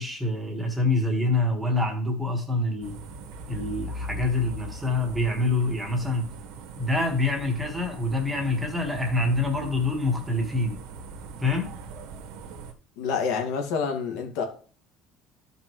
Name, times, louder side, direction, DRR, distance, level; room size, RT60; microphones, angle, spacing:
voice 1, 0.0-3.0 3.5-6.3 6.8-10.8 11.4-11.7, left 2 dB, 5° right, 2 dB, 1.8 m, -26 dB
sound 1, 2.8-12.7, right 2 dB, 85° right, 1.6 m, -40 dB
voice 2, 13.0-14.5, left 5 dB, 80° left, 3 dB, 2.1 m, -27 dB
13.5 x 5.3 x 3.2 m, 0.42 s
cardioid pair, 155°, 0 cm